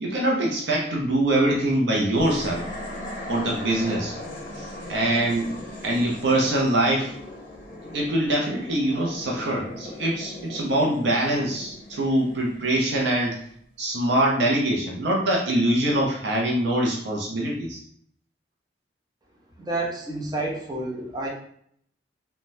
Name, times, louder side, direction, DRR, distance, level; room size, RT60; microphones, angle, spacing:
voice 1, 0.0-2.7 3.3-4.2 4.6-5.5 5.8-7.1 7.9-13.4 13.8-17.8, right 1 dB, 65° right, -2 dB, 0.5 m, -24 dB
sound 1, 2.1-13.5, left 1 dB, 45° left, 0.7 m, -39 dB
voice 2, 19.6-21.3, right 2 dB, 20° right, -2 dB, 0.5 m, -29 dB
3.1 x 2.1 x 2.6 m, 0.64 s
head